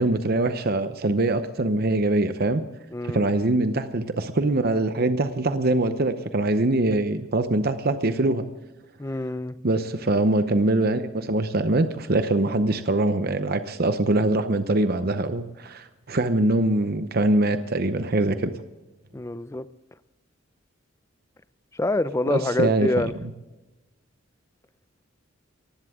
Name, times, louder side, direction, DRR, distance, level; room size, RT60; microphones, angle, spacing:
voice 1, 0.0-2.6 3.0-8.4 9.6-18.5 22.3-23.3, right 2 dB, 50° right, 10 dB, 0.8 m, -23 dB
voice 2, 2.9-3.3 9.0-9.6 19.1-19.7 21.8-23.1, left 2 dB, 15° left, 15 dB, 0.4 m, -26 dB
19.0 x 15.5 x 3.7 m, 1.1 s
head